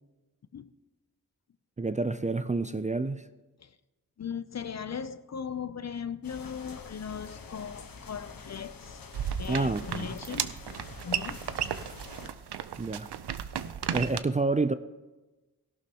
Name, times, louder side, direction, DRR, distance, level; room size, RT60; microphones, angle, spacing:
voice 1, 1.8-3.2 9.5-10.1 12.8-13.1 13.9-14.7, right 3 dB, 20° right, 0.4 m, -28 dB
voice 2, 4.2-9.0 9.4-10.5 11.0-11.4, left 7 dB, 45° left, 0.5 m, -38 dB
sound 1, 6.2-12.3, left 4 dB, 60° left, 1.2 m, -47 dB
sound 2, 9.1-14.2, right 9 dB, 80° right, 0.6 m, -34 dB
17.5 x 11.5 x 2.9 m
wide cardioid pair, 75°, 39 cm